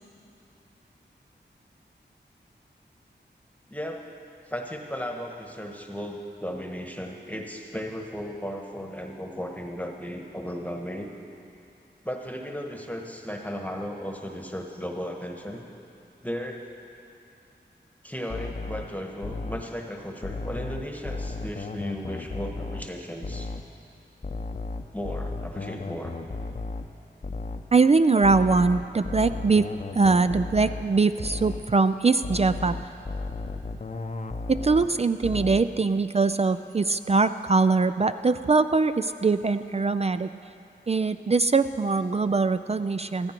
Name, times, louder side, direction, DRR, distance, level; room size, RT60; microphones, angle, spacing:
voice 1, 3.7-4.0 4.5-11.1 12.0-15.6 16.2-16.7 18.0-23.5 24.9-26.1, equal, 10° left, 2 dB, 1.2 m, -35 dB
sound 1, 18.3-19.7 20.2-23.0 23.2-23.7 24.2-27.7 28.2-31.0 31.2-31.7 32.2-35.0 35.2-35.7, left 3 dB, 40° left, 0.7 m, -35 dB
voice 2, 27.7-29.7 29.9-32.8 34.5-40.3 40.9-43.3, right 4 dB, 35° right, 11 dB, 0.4 m, -22 dB
14.5 x 14.0 x 4.5 m, 2.7 s
cardioid pair, 45°, 19 cm